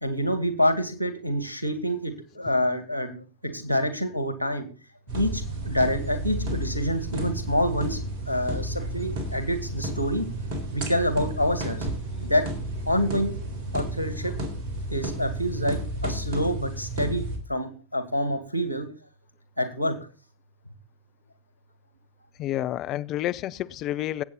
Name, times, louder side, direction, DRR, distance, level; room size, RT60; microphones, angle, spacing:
voice 1, 0.0-4.7 5.1-10.3 10.7-11.9 12.2-12.5 12.9-13.3 13.7-14.4 14.9-18.9 19.6-20.0, equal, 90° right, 2.1 m, -27 dB
sound 1, 5.1-17.4, right 1 dB, 45° right, 3.7 m, -32 dB
voice 2, 22.4-24.2, left 13 dB, 35° left, 0.6 m, -29 dB
20.0 x 8.5 x 4.2 m
figure-of-eight pair, 90°, 0 cm